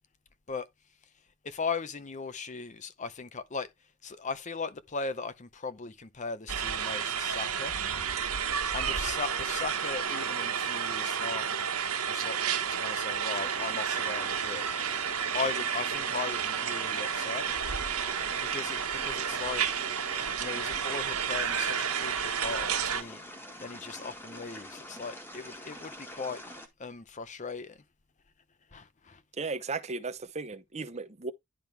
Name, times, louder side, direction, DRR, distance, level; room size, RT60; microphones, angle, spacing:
voice 1, 1.4-3.7 4.0-7.7 8.7-11.6 12.0-14.7 15.3-17.5 18.4-19.7 20.4-23.3 23.6-26.4 26.8-27.8 28.7-29.2, left 4 dB, 35° left, 0.7 m, -38 dB
sound 1, 6.5-23.0, right 7 dB, 90° right, 1.4 m, -31 dB
sound 2, 13.4-26.7, left 1 dB, 10° left, 1.7 m, -46 dB
voice 2, 29.4-31.3, right 4 dB, 30° right, 0.7 m, -36 dB
11.0 x 3.7 x 4.5 m
head